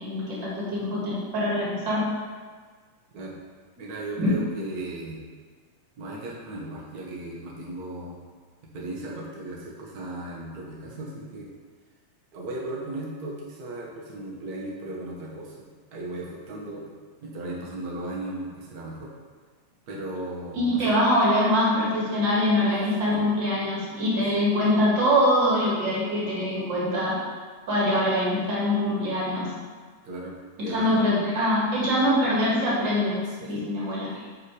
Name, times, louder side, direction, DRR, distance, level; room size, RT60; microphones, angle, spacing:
voice 1, 0.0-2.0 4.2-4.3 20.5-27.2 27.7-29.5 30.7-33.2 33.5-34.2, left 1 dB, 40° right, -6 dB, 2.2 m, -23 dB
voice 2, 3.8-5.2 6.0-8.2 8.6-11.5 12.3-16.8 17.2-19.1 19.9-20.9 23.1-23.2 30.0-31.0 33.2-33.7, right 2 dB, 85° right, -4 dB, 0.8 m, -36 dB
5.7 x 5.5 x 4.8 m, 1.5 s
omnidirectional pair, 3.5 m